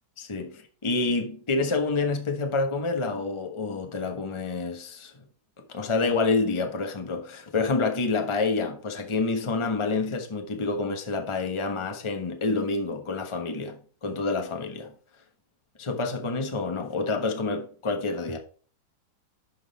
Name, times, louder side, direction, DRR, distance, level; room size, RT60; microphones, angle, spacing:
voice 1, 0.2-5.2 5.7-14.9 15.8-18.4, left 3 dB, 20° left, 0.9 m, -28 dB
11.5 x 3.9 x 4.1 m
omnidirectional pair, 2.0 m